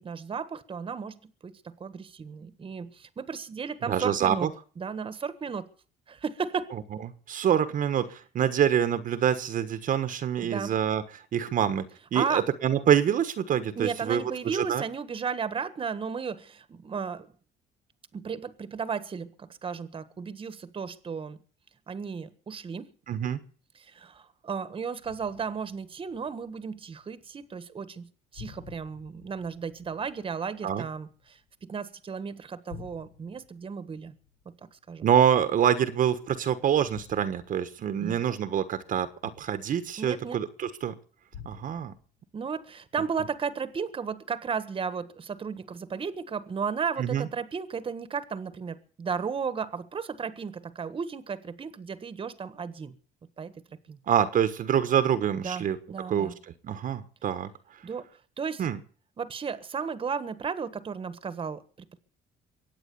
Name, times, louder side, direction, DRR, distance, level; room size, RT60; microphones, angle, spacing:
voice 1, 0.0-4.5 4.8-5.7 6.1-6.7 10.4-10.8 12.1-12.4 13.7-17.3 18.1-21.4 21.9-22.9 23.8-34.1 34.4-35.1 38.0-38.2 40.0-40.4 42.3-52.9 53.4-53.5 53.9-54.0 55.4-56.4 57.8-58.1 58.4-58.7 59.2-62.0, right 6 dB, 30° right, 1.5 m, -34 dB
voice 2, 3.9-4.5 7.3-11.0 11.3-11.8 12.1-14.2 14.5-14.8 23.1-23.4 30.6-30.8 35.0-40.9 41.4-41.9 47.0-47.3 54.1-55.8 56.1-56.3 56.6-57.5 58.6-58.8, right 9 dB, 50° right, 1.4 m, -26 dB
sound 1, 25.0-27.3 27.6-28.1 28.3-32.1 32.4-36.1 36.9-40.5 41.3-42.8 43.2-43.7, left 7 dB, 80° left, 6.8 m, -52 dB
23.0 x 8.9 x 6.9 m
cardioid pair, 110°, 17 cm